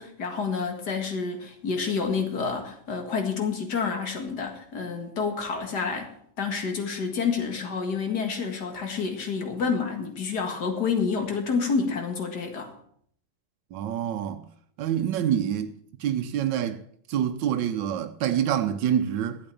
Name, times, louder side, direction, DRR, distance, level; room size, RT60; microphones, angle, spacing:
voice 1, 0.0-6.1 6.4-12.7, left 5 dB, 65° left, 2.4 m, -28 dB
voice 2, 13.7-14.5 14.8-16.8 17.1-19.4, right 9 dB, 90° right, 1.4 m, -26 dB
12.0 x 8.0 x 6.9 m
omnidirectional pair, 1.9 m